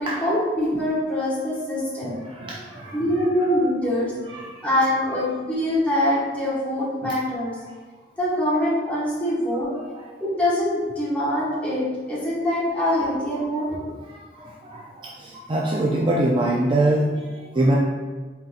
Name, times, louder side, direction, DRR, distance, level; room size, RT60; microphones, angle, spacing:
voice 1, 0.0-2.2 2.9-4.1 4.6-7.5 8.2-9.7 10.2-13.9, left 1 dB, 10° left, -9 dB, 1.3 m, -24 dB
voice 2, 2.0-3.3 4.3-5.2 7.0-7.1 9.7-10.0 13.5-13.6 14.0-17.8, right 1 dB, 25° right, -4 dB, 0.4 m, -25 dB
4.0 x 3.8 x 2.4 m, 1.3 s
head